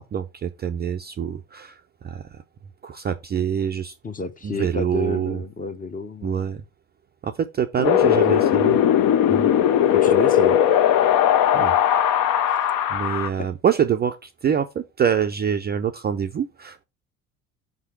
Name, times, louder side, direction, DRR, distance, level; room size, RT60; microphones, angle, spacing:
voice 1, 0.0-2.4 2.8-3.9 4.4-5.4 6.2-6.6 7.2-8.8 9.3-9.5 11.5-11.7 12.9-16.8, right 8 dB, 25° right, 0.5 m, -25 dB
voice 2, 4.0-6.4 7.8-8.5 9.9-10.6 13.4-13.5, left 4 dB, 20° left, 0.8 m, -30 dB
Wind, 7.8-13.3, left 10 dB, 50° left, 0.8 m, -18 dB
5.4 x 4.8 x 4.3 m
hypercardioid pair, 60°, 43 cm